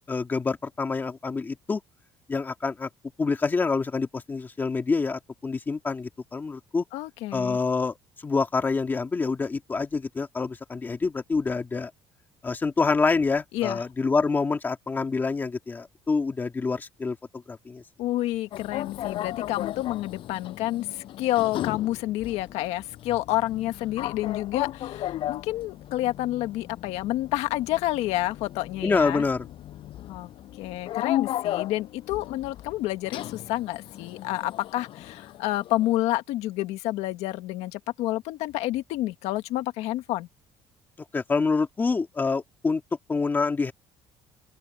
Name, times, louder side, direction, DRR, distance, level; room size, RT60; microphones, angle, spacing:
voice 1, 0.1-1.8 2.3-2.9 3.2-6.8 7.3-7.9 8.2-11.9 12.4-17.8 28.8-29.4 41.1-42.8 43.1-43.7, left 4 dB, 20° left, 1.9 m, -26 dB
voice 2, 6.9-7.6 13.5-13.8 18.0-29.2 30.1-30.3 30.6-40.3, left 16 dB, 85° left, 1.7 m, -29 dB
sound 1, 18.5-36.0, left 13 dB, 55° left, 6.8 m, -36 dB
open air
cardioid pair, 170°, 11 cm